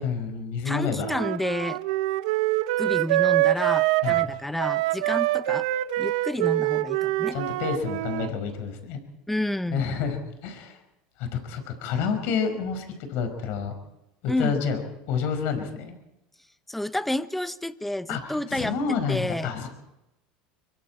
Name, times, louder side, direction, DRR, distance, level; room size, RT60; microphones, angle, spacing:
voice 1, 0.0-1.1 4.0-4.3 7.3-9.0 9.7-10.8 11.2-13.7 14.2-14.8 15.1-15.9 18.1-19.7, left 6 dB, 65° left, 7 dB, 5.2 m, -29 dB
voice 2, 0.6-1.8 2.8-5.7 6.0-7.4 9.3-9.8 14.3-14.6 16.7-18.8 19.1-19.5, left 1 dB, 5° left, 14 dB, 0.9 m, -30 dB
Wind instrument woodwind instrument, 1.0-8.3, right 16 dB, 80° right, 0.7 m, -25 dB
24.5 x 23.5 x 4.5 m, 0.93 s
supercardioid pair, 110°, 4 cm